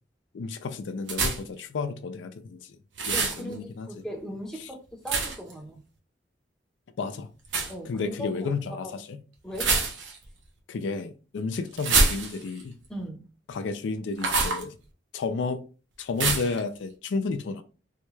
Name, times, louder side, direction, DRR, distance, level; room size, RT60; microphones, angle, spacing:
voice 1, 0.3-2.8 3.1-4.0 4.6-4.7 7.0-7.3 7.8-9.2 10.7-12.7 13.5-14.8 15.1-15.6 16.0-17.6, left 4 dB, 75° left, 0.4 m, -32 dB
sound 1, 1.1-1.6 3.0-3.4 5.1-5.5 7.5-7.7 9.5-10.3 11.8-12.6 14.2-14.6 16.2-16.6, right 3 dB, 75° right, 0.8 m, -25 dB
voice 2, 3.1-5.8 7.7-8.5 8.8-8.9 9.4-9.7 12.9-13.3, equal, 5° left, 0.6 m, -38 dB
3.6 x 2.2 x 3.1 m
head